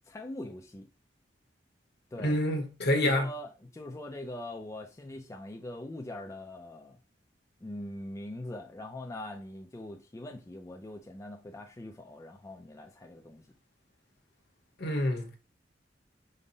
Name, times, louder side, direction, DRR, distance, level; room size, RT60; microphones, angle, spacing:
voice 1, 0.1-0.9 2.1-2.4 2.9-7.0 7.6-13.4, left 1 dB, 15° left, 0.4 m, -42 dB
voice 2, 2.2-3.3 14.8-15.4, left 1 dB, 65° left, 0.9 m, -27 dB
5.2 x 2.0 x 3.9 m
head